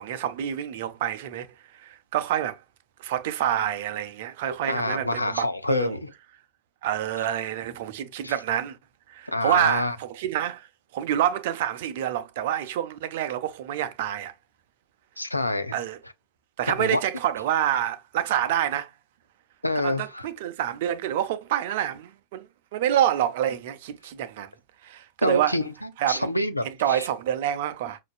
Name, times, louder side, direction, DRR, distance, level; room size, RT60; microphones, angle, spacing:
voice 1, 0.0-1.5 1.7-2.6 3.0-6.0 6.8-8.8 9.1-10.7 10.9-14.3 15.7-16.0 16.6-18.9 19.8-22.5 22.7-24.5 24.8-25.6 26.0-26.3 26.6-28.0, right 11 dB, 55° right, 0.5 m, -27 dB
voice 2, 4.7-6.1 8.2-8.3 9.3-10.0 15.2-15.8 16.7-17.0 19.6-20.2 25.2-27.1, left 1 dB, 85° left, 0.5 m, -27 dB
5.8 x 2.5 x 2.3 m
figure-of-eight pair, 90°, 0 cm